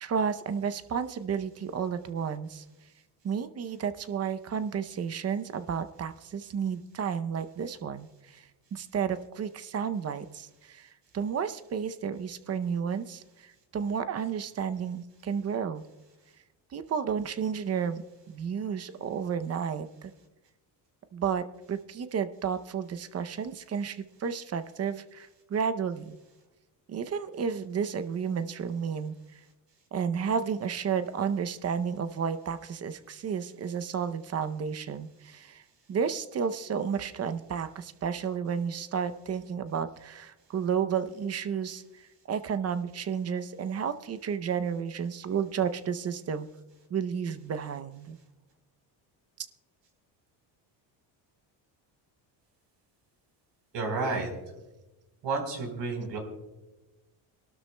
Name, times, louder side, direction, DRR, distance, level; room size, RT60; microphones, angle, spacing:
voice 1, 0.0-2.6 3.2-15.8 16.7-20.1 21.1-26.2 26.9-29.4 29.9-35.6 35.9-46.5 46.9-48.2 49.4-49.5, right 7 dB, 35° right, 11 dB, 0.6 m, -32 dB
voice 2, 53.7-54.3 55.2-56.2, right 3 dB, 65° right, 2 dB, 4.1 m, -30 dB
25.0 x 12.5 x 2.2 m, 1.0 s
cardioid pair, 125°, 45 cm